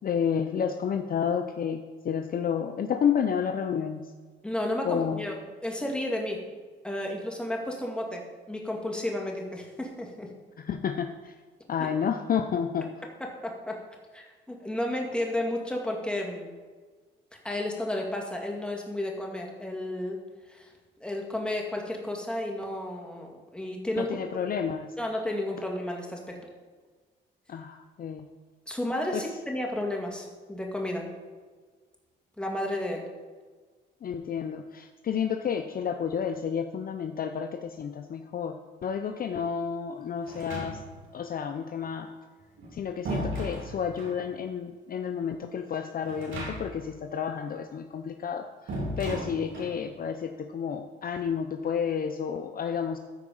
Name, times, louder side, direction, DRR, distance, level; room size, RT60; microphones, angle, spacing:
voice 1, 0.0-4.0 4.8-5.2 10.6-11.3 11.7-12.9 24.0-24.9 27.5-28.2 29.1-29.2 34.0-38.6 38.8-40.8 41.1-42.1 42.7-53.0, left 7 dB, 45° left, 6 dB, 0.6 m, -30 dB
voice 2, 4.4-5.3 5.6-6.4 6.8-10.3 13.2-13.8 14.1-16.5 17.4-20.2 20.5-20.7 21.0-24.2 25.0-26.4 28.7-31.1 32.4-33.0, left 1 dB, 5° left, 0 dB, 2.2 m, -32 dB
sound 1, 40.3-41.1 42.4-44.2 46.1-46.9 47.1-47.2 48.7-49.8, right 1 dB, 80° right, 3.5 m, -35 dB
14.0 x 4.8 x 5.5 m, 1.5 s
cardioid pair, 90°, 20 cm